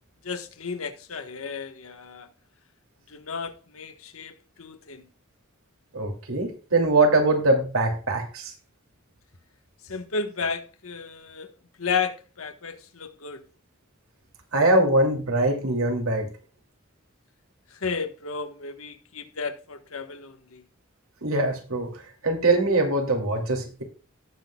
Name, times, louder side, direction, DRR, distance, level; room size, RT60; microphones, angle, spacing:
voice 1, 0.2-2.3 3.1-5.1 9.8-11.5 11.8-13.4 17.7-20.6, left 5 dB, 80° left, 1.4 m, -33 dB
voice 2, 5.9-8.5 14.5-16.3 21.2-23.8, right 2 dB, 85° right, 2.7 m, -22 dB
18.0 x 6.3 x 2.3 m
head